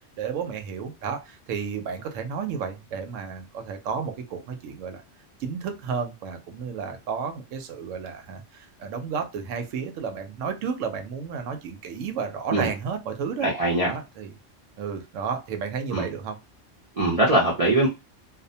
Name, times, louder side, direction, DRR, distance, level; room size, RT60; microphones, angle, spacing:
voice 1, 0.2-5.0 5.4-13.5 13.8-14.3 14.8-16.4, right 6 dB, 85° right, 0.9 m, -32 dB
voice 2, 13.4-13.9 15.9-16.1 16.9-17.9, right 1 dB, 40° right, 0.5 m, -21 dB
2.4 x 2.1 x 2.6 m
omnidirectional pair, 1.3 m